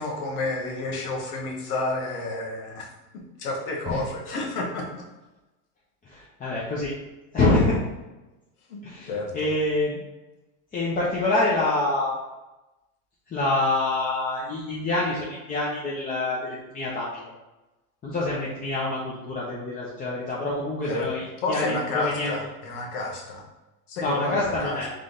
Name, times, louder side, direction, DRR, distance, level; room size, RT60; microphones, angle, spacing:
voice 1, 0.0-2.9 3.4-5.0 8.7-8.8 9.1-9.5 20.9-21.1 21.4-23.5 23.9-24.8, left 2 dB, 85° left, -1 dB, 1.4 m, -30 dB
voice 2, 6.0-6.9 7.3-7.8 8.8-10.0 10.7-12.1 13.3-17.3 18.0-22.3 24.0-24.9, left 2 dB, 20° left, -6 dB, 0.7 m, -26 dB
3.7 x 3.2 x 3.9 m, 1.1 s
supercardioid pair, 135°, 44 cm